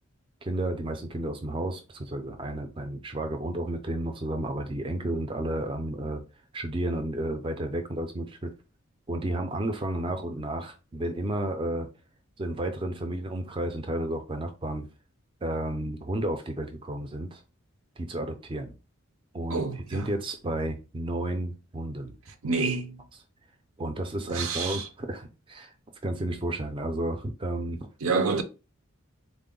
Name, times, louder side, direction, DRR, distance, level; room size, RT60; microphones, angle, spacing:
voice 1, 0.4-6.2 6.5-8.5 9.1-11.9 12.4-14.9 15.4-17.4 18.0-18.7 19.3-19.6 19.9-22.1 23.8-25.7 26.0-27.8, right 1 dB, 25° right, 0.4 m, -32 dB
voice 2, 19.5-20.1 22.4-23.0 24.3-24.9 28.0-28.4, right 4 dB, 75° right, 0.6 m, -28 dB
3.6 x 2.0 x 3.7 m
head